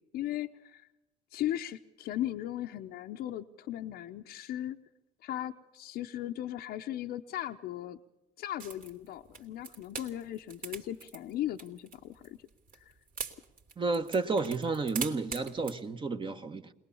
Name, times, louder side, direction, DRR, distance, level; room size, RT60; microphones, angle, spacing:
voice 1, 0.1-0.9 1.3-4.8 5.2-8.0 8.4-12.4 12.8-12.9, left 12 dB, 70° left, 0.8 m, -37 dB
sound 1, 8.6-15.8, right 5 dB, 55° right, 2.6 m, -42 dB
voice 2, 13.8-16.7, right 3 dB, 30° right, 1.1 m, -31 dB
21.5 x 19.5 x 7.1 m
cardioid pair, 110°, 17 cm